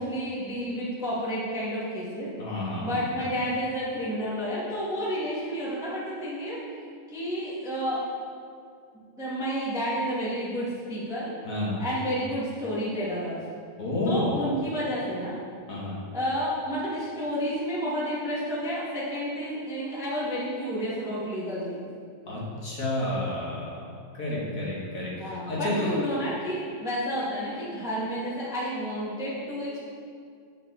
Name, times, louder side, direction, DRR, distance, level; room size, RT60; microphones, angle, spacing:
voice 1, 0.0-2.3 2.8-6.6 7.1-8.0 9.2-11.3 11.8-13.6 14.0-15.4 16.1-21.8 25.2-29.8, equal, ahead, -8 dB, 1.0 m, -30 dB
voice 2, 2.4-3.0 11.4-11.8 13.8-14.3 15.7-16.0 22.3-23.8 24.2-25.9, left 1 dB, 40° left, -6 dB, 1.2 m, -30 dB
8.6 x 7.5 x 4.1 m, 2.3 s
omnidirectional pair, 4.1 m